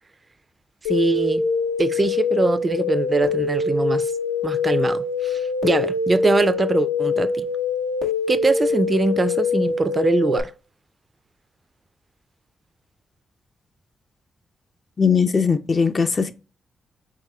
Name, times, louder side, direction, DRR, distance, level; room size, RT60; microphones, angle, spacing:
voice 1, 0.8-1.4 1.8-4.1 4.4-7.5 8.3-10.5, right 3 dB, 35° right, 0.3 m, -22 dB
sound 1, 0.9-10.4, left 4 dB, 85° left, 0.7 m, -24 dB
voice 2, 15.0-16.3, left 5 dB, 45° left, 0.5 m, -19 dB
4.7 x 3.5 x 2.2 m
supercardioid pair, 45°, 0 cm